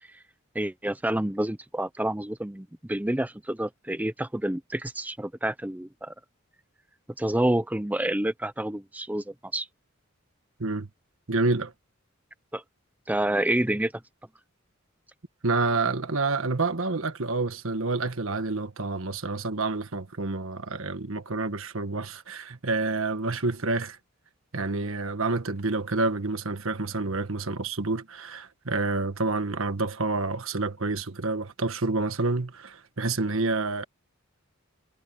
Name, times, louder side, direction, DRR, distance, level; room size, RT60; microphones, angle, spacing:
voice 1, 0.5-6.1 7.2-9.7 12.5-12.6 13.1-13.9, right 1 dB, 10° right, 0.7 m, -28 dB
voice 2, 11.3-11.7 15.4-24.0 24.5-33.8, right 3 dB, 80° right, 1.5 m, -28 dB
head